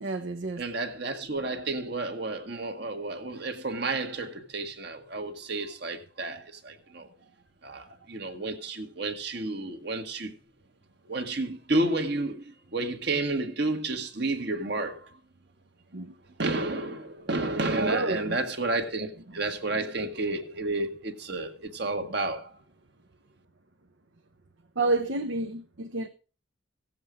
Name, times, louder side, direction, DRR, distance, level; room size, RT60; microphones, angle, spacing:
voice 1, 0.0-0.6 15.9-16.1 17.8-18.4 24.8-26.1, right 2 dB, 75° right, 1.0 m, -29 dB
voice 2, 0.6-7.1 7.6-10.3 11.1-15.1 16.4-22.5, right 2 dB, 55° right, 1.6 m, -31 dB
16.0 x 7.7 x 5.0 m
head